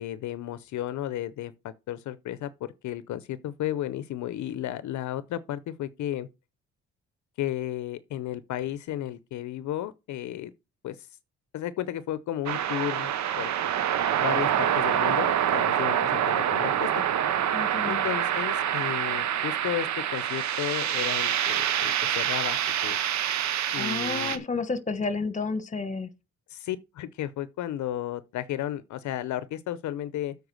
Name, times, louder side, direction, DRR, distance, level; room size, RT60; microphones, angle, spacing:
voice 1, 0.0-1.5 1.9-6.3 7.4-10.5 10.8-11.1 11.5-13.5 14.2-17.0 17.8-23.0 23.7-24.4 26.5-30.4, left 12 dB, 70° left, 0.6 m, -33 dB
sound 1, 12.5-24.4, right 10 dB, 70° right, 0.9 m, -26 dB
voice 2, 17.5-18.0 23.8-26.1, left 4 dB, 25° left, 1.2 m, -31 dB
7.9 x 4.7 x 6.2 m
cardioid pair, 90°, 30 cm